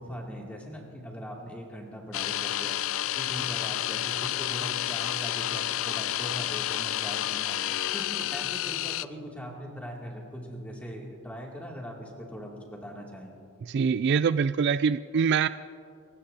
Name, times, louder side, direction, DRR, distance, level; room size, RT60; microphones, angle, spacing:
voice 1, 0.0-2.8 3.1-7.6 7.9-13.3, equal, 5° left, -2 dB, 2.6 m, -40 dB
sound 1, 2.1-9.0, left 13 dB, 65° left, 0.4 m, -30 dB
voice 2, 13.7-15.5, right 6 dB, 50° right, 14 dB, 0.3 m, -24 dB
30.0 x 16.0 x 2.8 m, 2.3 s
head